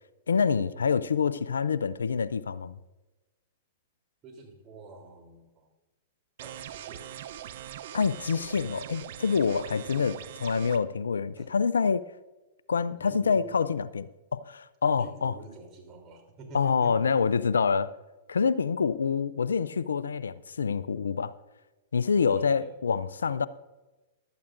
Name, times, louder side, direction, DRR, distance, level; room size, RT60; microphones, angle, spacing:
voice 1, 0.3-2.8 7.9-12.0 12.7-15.4 16.5-17.9 18.3-21.3 21.9-23.5, left 5 dB, 80° left, 17 dB, 0.4 m, -26 dB
voice 2, 4.2-5.7 6.4-7.1 9.6-9.8 11.4-11.5 13.0-13.6 14.9-17.1 22.3-22.7, right 3 dB, 35° right, 1 dB, 3.3 m, -47 dB
sound 1, 6.4-10.8, right 11 dB, 60° right, 0.6 m, -42 dB
15.5 x 12.0 x 2.6 m, 1.1 s
hypercardioid pair, 110°, 0 cm